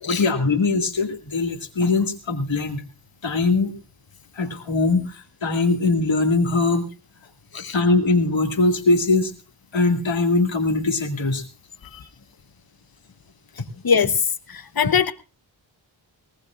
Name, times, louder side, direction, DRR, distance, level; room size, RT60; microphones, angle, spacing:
voice 1, 0.1-2.8 3.2-3.7 4.4-6.9 7.5-9.3 9.7-11.4 11.9-12.1, left 3 dB, 80° left, 5 dB, 2.1 m, -21 dB
voice 2, 14.5-15.1, left 6 dB, 50° left, 12 dB, 1.0 m, -21 dB
19.5 x 19.0 x 2.4 m, 0.30 s
cardioid pair, 40°, 45 cm